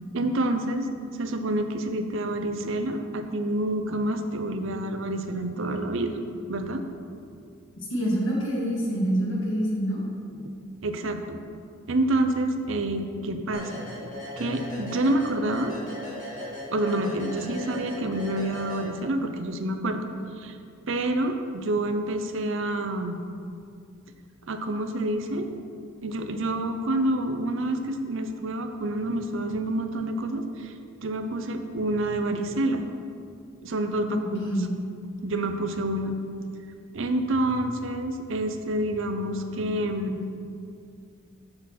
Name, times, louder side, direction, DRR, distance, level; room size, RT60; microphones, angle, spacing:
voice 1, 0.1-0.9 1.2-6.1 6.5-6.8 10.8-11.4 11.9-15.8 16.7-20.1 20.4-20.6 20.9-23.2 24.5-25.5 26.0-30.7 31.0-32.8 33.6-34.5 35.2-36.1 36.9-40.2, right 1 dB, 60° right, 7 dB, 0.6 m, -28 dB
voice 2, 7.9-10.0 34.1-34.7, equal, 55° left, -4 dB, 2.1 m, -26 dB
sound 1, 13.5-19.3, left 1 dB, 35° left, 2.2 m, -38 dB
6.5 x 5.9 x 6.0 m, 2.4 s
head